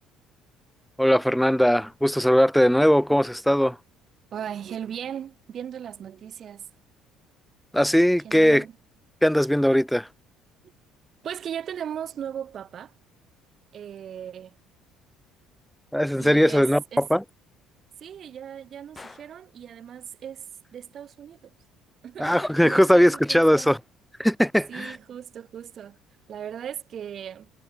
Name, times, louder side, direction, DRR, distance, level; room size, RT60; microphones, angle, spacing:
voice 1, 1.0-3.8 7.7-8.6 9.2-10.1 15.9-17.2 22.2-23.8 24.2-25.0, equal, ahead, 0.4 m, -20 dB
voice 2, 4.3-6.7 8.2-8.7 11.2-12.9 13.7-14.6 16.2-17.1 18.0-21.5 22.0-22.3 22.6-23.7 24.7-26.0 26.3-27.5, right 9 dB, 50° right, 0.7 m, -37 dB
Gunshot gunfire, 19.0-19.4 22.2-22.7, left 3 dB, 25° left, 1.9 m, -45 dB
supercardioid pair, 80°, 0 cm